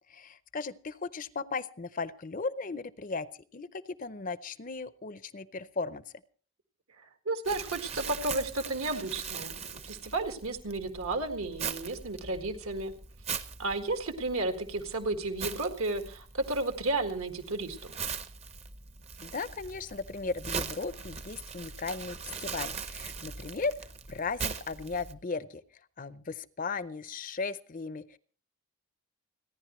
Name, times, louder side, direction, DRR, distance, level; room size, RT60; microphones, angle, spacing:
voice 1, 0.1-3.3 3.5-6.0 19.2-23.7 24.1-25.6 26.0-28.2, left 4 dB, 35° left, 15 dB, 0.6 m, -36 dB
voice 2, 7.3-12.9 13.6-17.9, right 2 dB, 75° right, 6 dB, 1.8 m, -33 dB
Crumpling crinkling, 7.4-25.1, right 5 dB, 30° right, 0.7 m, -41 dB
29.0 x 10.5 x 3.1 m, 0.41 s
head